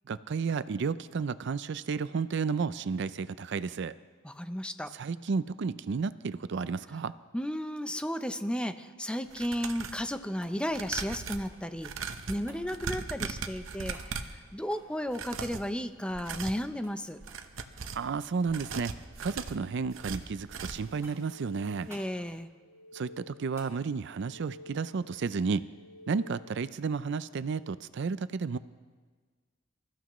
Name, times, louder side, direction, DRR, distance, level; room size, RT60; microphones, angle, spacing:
voice 1, 0.1-3.9 4.9-7.1 17.9-18.9 19.2-21.9 22.9-25.7 26.1-28.6, right 5 dB, 65° right, 15 dB, 0.4 m, -32 dB
voice 2, 4.2-4.9 7.3-11.9 12.3-14.2 14.5-17.2 21.9-22.5, equal, 5° left, 9 dB, 0.6 m, -34 dB
sound 1, 9.3-10.1 10.7-14.4 15.1-15.7 16.1-16.6 17.1-18.1 18.5-21.0 21.3-21.4 21.8-21.9, right 5 dB, 90° right, 0.9 m, -39 dB
sound 2, 10.4-11.9 12.5-12.7 13.9-14.1 14.6-16.6 16.8-17.0 17.3-17.5 17.8-18.8 19.0-19.6 20.1-20.6 21.0-21.4 21.9-22.1 23.6-23.8 26.1-26.2, right 1 dB, 15° right, 2.6 m, -55 dB
sound 3, 21.0-22.2 22.5-23.7 24.0-25.2 25.6-26.7, left 2 dB, 75° left, 1.0 m, -52 dB
26.5 x 14.5 x 3.1 m, 1.5 s
head